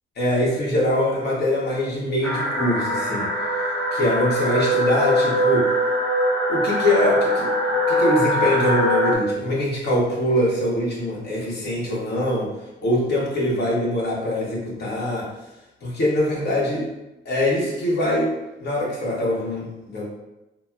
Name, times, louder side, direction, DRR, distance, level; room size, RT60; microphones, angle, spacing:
voice 1, 0.2-3.3 3.9-5.7 6.5-12.5 12.8-15.3 15.8-16.8 17.2-18.3 18.6-20.0, left 1 dB, 55° left, -5 dB, 1.1 m, -23 dB
sound 1, 2.2-9.1, equal, 10° left, 0.8 m, -22 dB
4.0 x 2.0 x 2.3 m, 0.98 s
cardioid pair, 90°, 20 cm